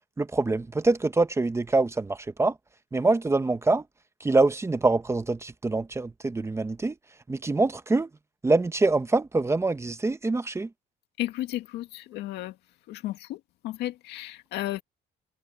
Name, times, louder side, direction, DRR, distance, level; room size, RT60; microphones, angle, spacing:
voice 1, 0.2-2.5 2.9-3.8 4.2-6.9 7.3-8.1 8.4-10.7, right 3 dB, 15° right, 1.0 m, -24 dB
voice 2, 11.2-12.5 12.9-13.4 13.6-14.8, left 15 dB, 85° left, 2.1 m, -33 dB
cardioid pair, 110°, 17 cm